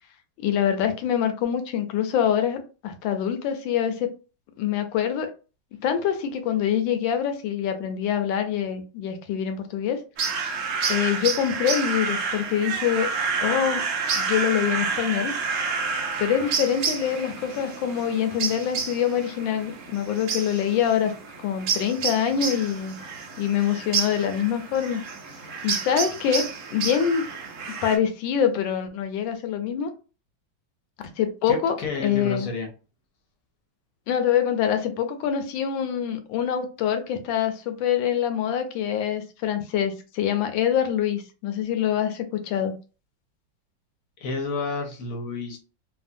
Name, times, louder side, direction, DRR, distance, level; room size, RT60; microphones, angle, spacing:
voice 1, 0.4-4.1 4.6-5.3 5.8-10.0 10.9-13.1 13.4-13.8 14.1-15.3 16.2-21.1 21.4-23.0 23.4-25.0 25.6-27.3 27.8-29.9 31.2-32.5 34.1-42.8, left 9 dB, 80° left, 1.3 m, -25 dB
sound 1, 10.2-28.0, right 5 dB, 85° right, 0.6 m, -29 dB
voice 2, 31.5-32.7 44.2-45.6, left 3 dB, 60° left, 0.9 m, -30 dB
3.3 x 2.1 x 2.5 m
omnidirectional pair, 2.1 m